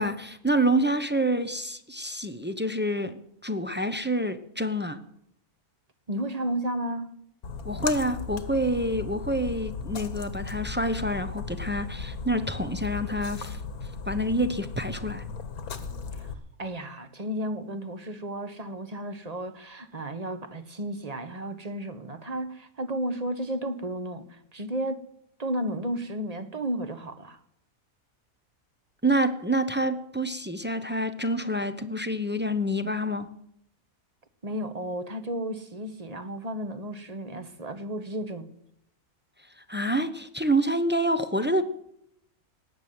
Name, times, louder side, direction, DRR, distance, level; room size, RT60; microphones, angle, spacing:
voice 1, 0.0-5.0 7.6-15.2 29.0-33.3 39.4-41.6, right 1 dB, 10° right, 0.6 m, -27 dB
voice 2, 6.1-7.2 16.1-25.0 25.4-27.4 34.4-38.5, right 1 dB, 30° right, 1.1 m, -33 dB
Splash splatter, 7.4-16.3, left 4 dB, 80° left, 1.8 m, -36 dB
18.5 x 7.4 x 9.5 m
omnidirectional pair, 1.5 m